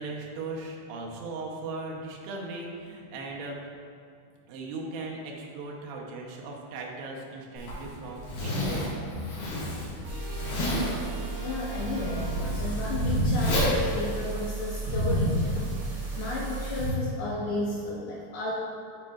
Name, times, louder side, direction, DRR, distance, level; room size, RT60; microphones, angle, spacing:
voice 1, 0.0-3.6 4.5-9.2, right 3 dB, 80° right, -1 dB, 2.8 m, -38 dB
Zipper (clothing), 7.6-15.0, left 1 dB, 65° left, 3.0 m, -32 dB
sound 1, 10.0-16.9, right 1 dB, 55° right, 2.2 m, -30 dB
voice 2, 11.3-18.5, left 2 dB, 80° left, -5 dB, 2.3 m, -33 dB
11.5 x 4.1 x 2.3 m, 2.5 s
omnidirectional pair, 4.9 m